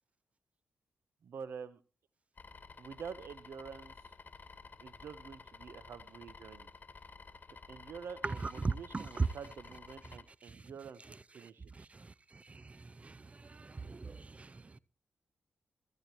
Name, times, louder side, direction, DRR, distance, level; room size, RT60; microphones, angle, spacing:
voice 1, 1.2-1.8 2.8-4.1 4.8-6.7 7.7-11.9, right 6 dB, 75° right, 0.9 m, -48 dB
sound 1, 2.4-10.2, left 4 dB, 40° left, 2.8 m, -53 dB
voice 2, 8.6-9.3 11.8-12.1 12.3-12.8 13.0-14.8, right 4 dB, 30° right, 0.5 m, -38 dB
16.0 x 14.5 x 3.0 m
cardioid pair, 55°, 4 cm